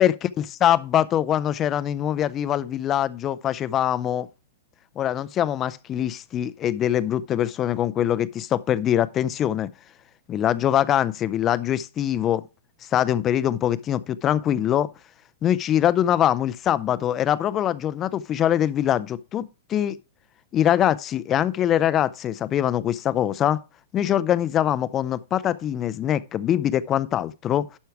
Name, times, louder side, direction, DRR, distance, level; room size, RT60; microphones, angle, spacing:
voice 1, 0.0-4.3 5.0-9.7 10.3-12.4 12.9-14.9 15.4-20.0 20.5-23.6 23.9-27.7, left 11 dB, 20° left, 0.4 m, -23 dB
11.5 x 4.7 x 4.6 m
hypercardioid pair, 165°, 0 cm